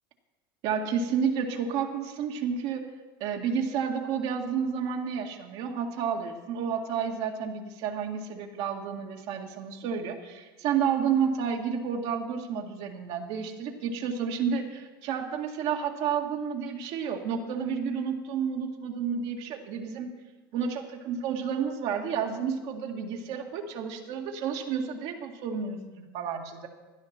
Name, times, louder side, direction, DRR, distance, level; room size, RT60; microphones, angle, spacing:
voice 1, 0.6-2.9 3.2-20.1 20.5-26.7, right 7 dB, 60° right, 2 dB, 2.0 m, -31 dB
17.0 x 11.5 x 4.4 m, 1.2 s
hypercardioid pair, 95°, 12 cm